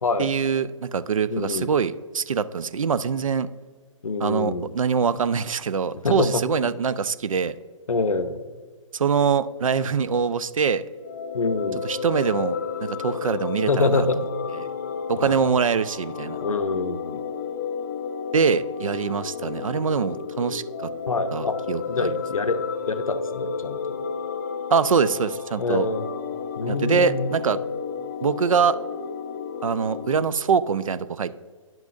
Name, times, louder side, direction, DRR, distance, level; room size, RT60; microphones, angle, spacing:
voice 1, 0.2-3.5 4.2-7.5 8.9-10.8 11.8-14.1 15.1-16.4 18.3-20.9 21.3-22.1 24.7-25.9 26.7-27.6 28.2-28.8 29.6-31.4, right 6 dB, 75° right, 15 dB, 0.4 m, -24 dB
voice 2, 1.3-1.7 4.0-4.7 6.0-6.7 7.9-8.4 11.3-11.8 13.7-14.2 15.2-15.6 16.4-17.2 21.1-21.6 21.9-24.0 25.6-26.1 26.6-27.3, left 3 dB, 80° left, 11 dB, 0.6 m, -26 dB
sound 1, 10.9-30.2, left 6 dB, 30° left, 0.4 m, -32 dB
10.5 x 6.0 x 2.5 m, 1.5 s
figure-of-eight pair, 130°, 17 cm